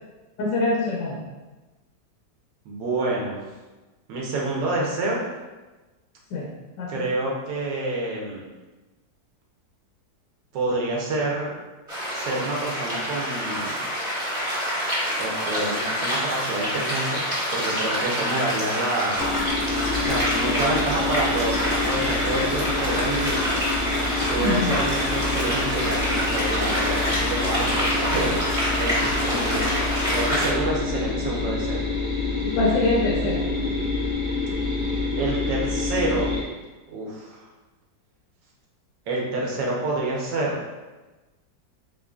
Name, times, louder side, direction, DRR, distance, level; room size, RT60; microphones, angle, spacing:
voice 1, 0.4-1.3 6.3-6.5 6.8-6.9 24.4-24.8 29.9-30.0 32.4-33.4, left 2 dB, 75° left, -2 dB, 1.2 m, -24 dB
voice 2, 2.6-3.4 4.1-5.2 6.9-8.4 10.5-11.5 12.1-13.8 15.2-17.2 17.5-19.4 19.9-23.3 24.2-29.7 30.1-31.8 35.2-36.3 36.9-37.5 39.1-40.6, right 2 dB, 80° right, -3 dB, 1.5 m, -28 dB
sound 1, 11.9-30.5, equal, 20° right, 1.1 m, -27 dB
sound 2, 19.2-36.4, left 3 dB, 15° left, 1.0 m, -27 dB
3.9 x 3.8 x 2.3 m, 1.2 s
omnidirectional pair, 2.0 m